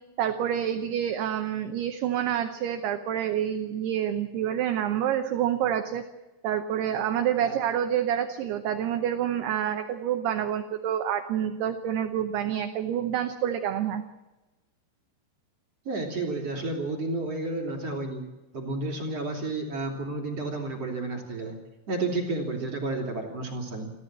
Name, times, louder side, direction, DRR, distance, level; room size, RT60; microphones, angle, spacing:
voice 1, 0.2-6.0 6.4-14.0, right 10 dB, 75° right, 6 dB, 2.5 m, -28 dB
voice 2, 15.8-18.2 18.5-21.5 21.9-23.9, right 2 dB, 35° right, 0 dB, 3.3 m, -31 dB
29.0 x 12.5 x 7.5 m, 1.1 s
omnidirectional pair, 5.6 m